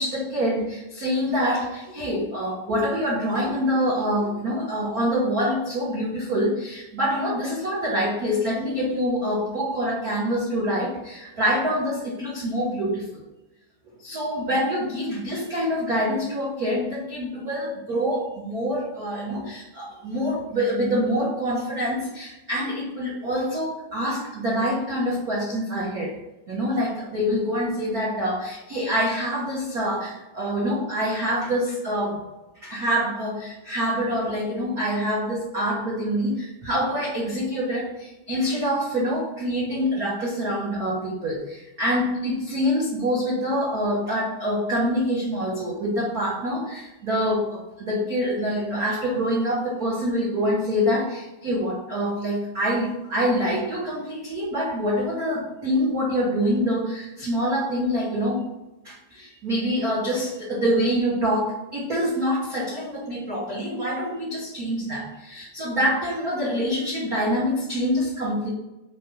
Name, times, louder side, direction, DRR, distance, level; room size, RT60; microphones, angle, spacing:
voice 1, 0.0-13.2 14.0-26.2 26.5-32.2 32.6-58.4 58.8-68.5, equal, 60° right, -6 dB, 0.9 m, -26 dB
5.2 x 3.5 x 5.4 m, 0.99 s
omnidirectional pair, 3.6 m